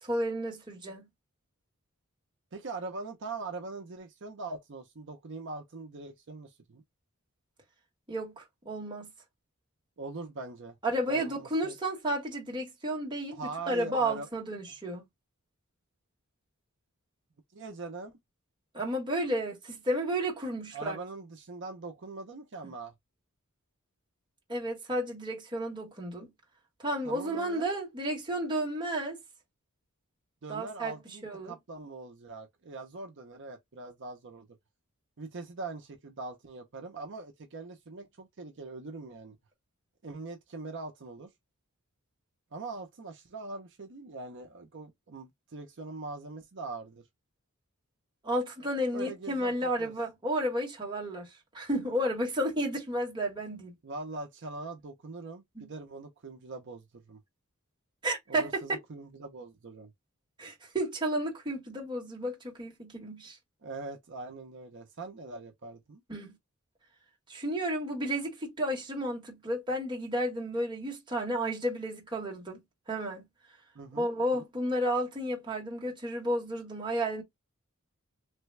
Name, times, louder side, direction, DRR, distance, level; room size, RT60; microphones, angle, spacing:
voice 1, 0.0-1.1 8.1-9.1 10.8-15.0 18.7-21.0 24.5-26.3 26.8-29.2 30.5-30.9 31.2-31.5 48.2-51.3 51.5-53.7 55.6-55.7 58.0-58.8 60.4-63.4 66.1-66.3 67.3-72.6 72.9-73.2 73.9-77.2, right 1 dB, 20° right, 1.1 m, -32 dB
voice 2, 2.5-6.8 10.0-10.8 11.1-11.8 13.3-14.3 17.5-18.2 20.7-22.9 27.0-27.6 30.4-34.5 35.2-39.4 40.0-41.3 42.5-47.0 48.9-49.9 53.8-57.2 58.3-59.9 63.6-66.0 73.7-74.1 74.3-74.5, right 3 dB, 55° right, 0.6 m, -42 dB
3.3 x 2.2 x 3.1 m
head